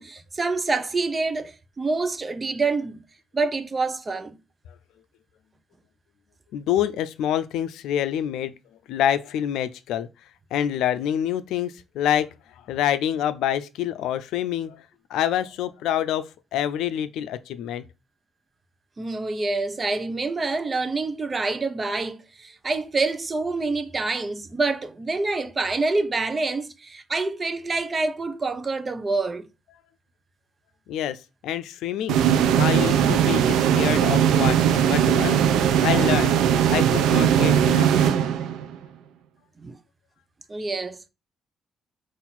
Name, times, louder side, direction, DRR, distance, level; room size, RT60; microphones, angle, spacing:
voice 1, 0.0-3.0 3.3-4.4 19.0-29.5 39.6-39.8 40.5-41.0, right 3 dB, 30° right, 0.6 m, -27 dB
voice 2, 6.5-8.5 8.9-10.1 10.5-17.8 30.9-32.2 32.6-35.4 35.8-36.4 36.7-37.9, left 10 dB, 90° left, 0.3 m, -27 dB
sound 1, 32.1-38.8, right 9 dB, 90° right, 0.5 m, -19 dB
4.0 x 2.5 x 4.1 m
cardioid pair, 90°, 0 cm